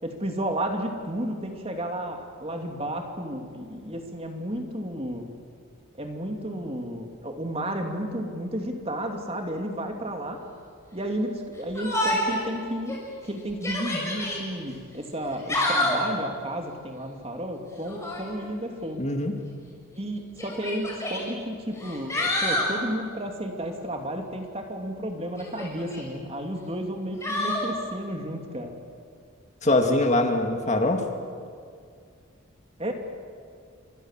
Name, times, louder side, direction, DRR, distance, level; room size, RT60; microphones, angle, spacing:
voice 1, 0.0-5.3 6.0-10.4 10.9-13.0 13.2-19.0 19.9-28.7 32.8-32.9, right 1 dB, 30° right, 3 dB, 2.8 m, -32 dB
Yell, 11.7-12.4 12.9-13.0 13.5-14.4 15.2-16.1 17.8-18.3 19.4-19.5 20.4-21.2 21.8-22.7 25.4-26.0 27.2-27.7, left 1 dB, 15° left, 6.6 m, -27 dB
voice 2, 19.0-19.3 29.6-31.0, left 2 dB, 35° left, 4 dB, 2.3 m, -22 dB
30.0 x 25.5 x 7.6 m, 2.2 s
head